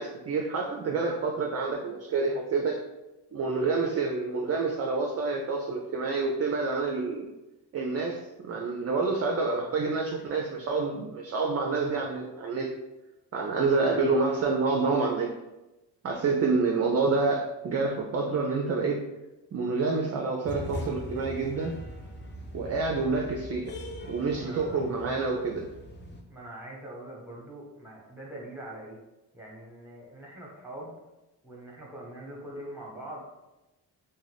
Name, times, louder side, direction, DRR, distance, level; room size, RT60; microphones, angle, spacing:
voice 1, 0.0-2.8 3.3-7.3 7.7-12.7 13.3-15.3 16.0-19.0 19.5-21.8 22.5-23.7 24.1-25.7, right 4 dB, 35° right, 0 dB, 0.4 m, -28 dB
sound 1, 20.4-26.2, left 1 dB, 25° left, 0.5 m, -41 dB
voice 2, 24.3-24.8 26.3-29.0 29.3-31.0 31.4-33.4, right 1 dB, 5° right, -2 dB, 1.0 m, -43 dB
2.4 x 2.2 x 3.3 m, 1.0 s
supercardioid pair, 60°, 44 cm